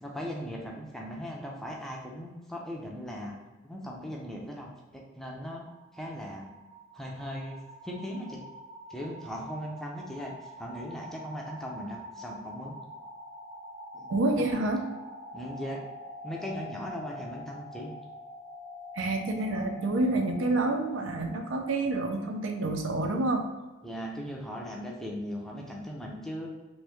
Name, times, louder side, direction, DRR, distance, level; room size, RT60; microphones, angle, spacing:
voice 1, 0.0-3.3 3.6-5.7 5.9-6.5 6.9-7.6 7.8-8.4 8.9-10.3 10.6-12.8 13.9-14.1 14.3-14.7 15.3-15.8 16.2-17.9 23.8-26.5, equal, ahead, -2 dB, 0.5 m, -38 dB
sound 1, 5.1-22.9, left 1 dB, 45° right, 0.8 m, -46 dB
voice 2, 14.1-14.8 18.9-23.5, right 2 dB, 75° right, 4 dB, 0.4 m, -28 dB
3.0 x 2.6 x 3.4 m, 1.1 s
head